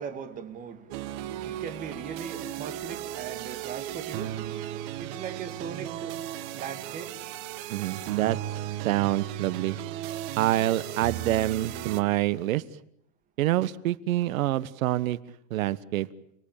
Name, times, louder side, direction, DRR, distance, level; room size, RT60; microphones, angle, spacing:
voice 1, 0.0-7.4, right 7 dB, 20° right, 9 dB, 2.0 m, -40 dB
sound 1, 0.9-12.0, right 12 dB, 40° right, 1.5 m, -36 dB
voice 2, 7.7-8.4 8.8-9.8 10.4-12.6 13.4-15.2 15.5-16.1, right 15 dB, 85° right, 17 dB, 1.4 m, -26 dB
29.5 x 19.0 x 8.9 m, 0.73 s
supercardioid pair, 175°, 40 cm